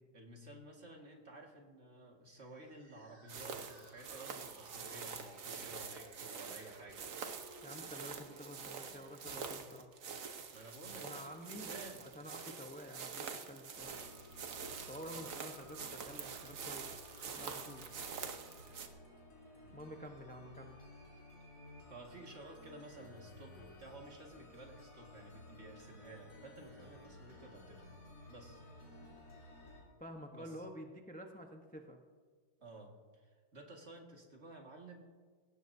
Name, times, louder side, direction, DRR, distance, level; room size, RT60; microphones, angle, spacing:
voice 1, 0.1-7.0 10.5-12.1 19.6-19.8 21.9-28.0 28.3-28.6 30.3-30.6 32.6-35.1, right 2 dB, 40° right, 0 dB, 2.2 m, -53 dB
sound 1, 2.3-9.7, right 1 dB, 85° right, 5.1 m, -59 dB
sound 2, 3.3-18.9, right 6 dB, 55° right, 1.3 m, -46 dB
voice 2, 7.6-9.9 11.0-11.7 12.0-14.0 14.9-16.9 17.4-17.9 19.7-20.8 30.0-32.0, equal, 10° left, 3 dB, 0.6 m, -49 dB
sound 3, 13.8-29.8, left 1 dB, 70° left, 4.1 m, -56 dB
20.5 x 16.5 x 2.7 m, 1.5 s
omnidirectional pair, 1.8 m